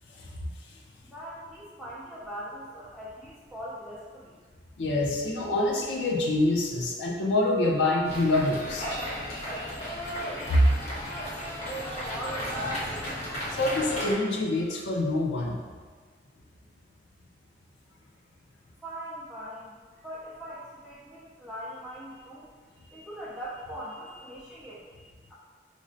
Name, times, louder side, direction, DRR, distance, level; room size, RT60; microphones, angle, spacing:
voice 1, 1.1-4.4 11.7-13.3 18.8-19.8 20.0-22.5 22.7-25.3, equal, ahead, -10 dB, 0.4 m, -41 dB
voice 2, 4.8-8.9 10.5-10.7 13.5-15.6, left 1 dB, 85° left, -1 dB, 0.5 m, -25 dB
sound 1, 8.0-14.1, equal, 40° left, 0.8 m, -34 dB
5.0 x 2.1 x 2.5 m, 1.5 s
head